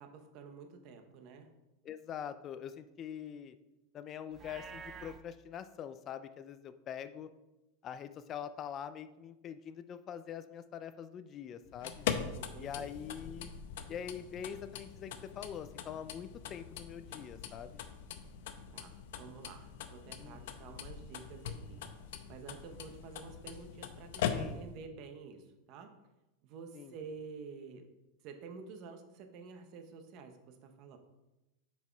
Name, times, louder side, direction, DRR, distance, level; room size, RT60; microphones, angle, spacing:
voice 1, 0.0-1.5 12.3-12.9 18.7-21.8 22.3-25.9 26.4-27.8 28.2-31.0, right 5 dB, 45° right, 6 dB, 0.9 m, -50 dB
voice 2, 1.8-3.5 3.9-7.3 7.8-12.1 12.6-13.5 13.9-17.8 20.2-20.6 24.3-24.7 26.7-26.9, left 8 dB, 30° left, 11 dB, 0.3 m, -44 dB
Livestock farm animals working animals, 4.3-5.2, right 6 dB, 25° right, 0.5 m, -48 dB
sound 1, 11.6-24.8, left 8 dB, 70° left, 0.7 m, -42 dB
6.9 x 4.8 x 4.5 m, 0.98 s
supercardioid pair, 155°, 0 cm